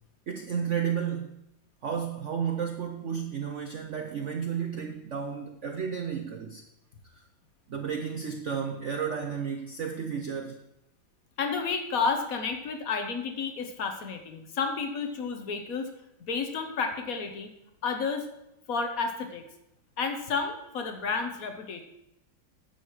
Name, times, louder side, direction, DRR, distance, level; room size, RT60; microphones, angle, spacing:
voice 1, 0.3-1.4 1.8-6.6 7.1-7.2 7.7-10.6, right 7 dB, 75° right, 5 dB, 0.6 m, -32 dB
voice 2, 11.4-15.9 16.2-17.5 17.8-18.3 18.7-19.4 20.0-21.8, left 5 dB, 50° left, 6 dB, 1.4 m, -31 dB
10.0 x 7.7 x 4.8 m, 0.83 s
omnidirectional pair, 2.2 m